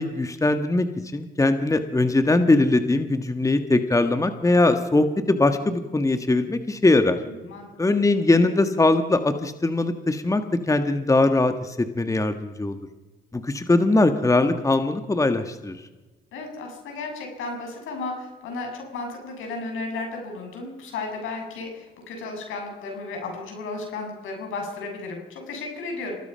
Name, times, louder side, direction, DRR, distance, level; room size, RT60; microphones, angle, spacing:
voice 1, 0.0-7.2 7.8-12.8 13.3-15.8, left 2 dB, 15° left, 8 dB, 1.6 m, -21 dB
voice 2, 16.3-26.2, left 3 dB, 85° left, 2 dB, 7.5 m, -34 dB
27.0 x 18.5 x 5.7 m, 1.2 s
cardioid pair, 90°, 20 cm